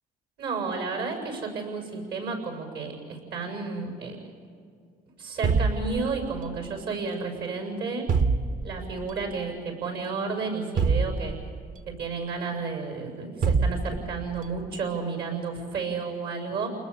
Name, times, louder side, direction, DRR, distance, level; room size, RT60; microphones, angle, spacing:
voice 1, 0.4-4.2 5.2-8.1 8.6-11.4 11.9-16.7, right 4 dB, 75° right, 3 dB, 7.3 m, -32 dB
sound 1, 5.4-6.6 8.1-9.0 10.8-11.9 13.4-14.4, right 4 dB, 50° right, 1.0 m, -25 dB
30.0 x 20.5 x 7.2 m, 2.2 s
cardioid pair, 110°, 17 cm